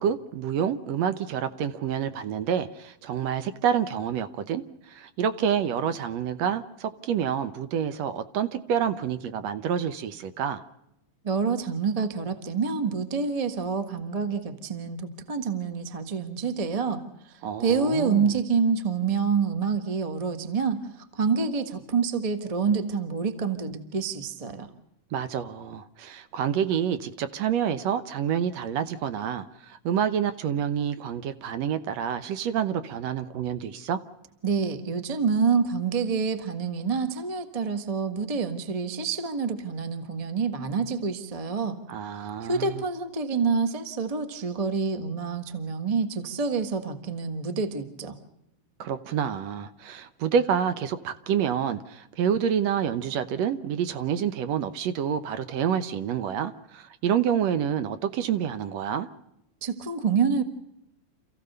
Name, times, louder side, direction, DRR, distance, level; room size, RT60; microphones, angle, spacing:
voice 1, 0.0-10.6 17.4-18.3 25.1-34.0 41.9-42.8 48.8-59.1, right 8 dB, 70° right, 12 dB, 2.0 m, -28 dB
voice 2, 11.2-24.7 34.4-41.8 42.4-48.2 59.6-60.4, right 5 dB, 30° right, 9 dB, 0.6 m, -27 dB
28.0 x 15.5 x 6.7 m, 0.81 s
omnidirectional pair, 3.4 m